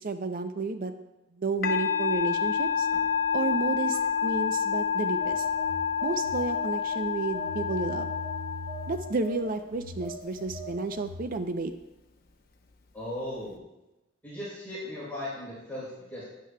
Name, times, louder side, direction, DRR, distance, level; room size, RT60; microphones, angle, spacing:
voice 1, 0.0-0.9 1.4-2.9 3.3-5.5 6.0-8.1 8.9-11.7, right 3 dB, 45° right, 8 dB, 0.5 m, -31 dB
Musical instrument, 1.6-9.3, left 7 dB, 50° left, 0.8 m, -28 dB
Telephone, 5.2-7.0 7.3-11.4, equal, 85° right, 3.4 m, -41 dB
voice 2, 12.9-13.6 14.2-16.2, left 1 dB, 10° left, -10 dB, 3.5 m, -37 dB
11.0 x 10.0 x 2.2 m, 0.97 s
head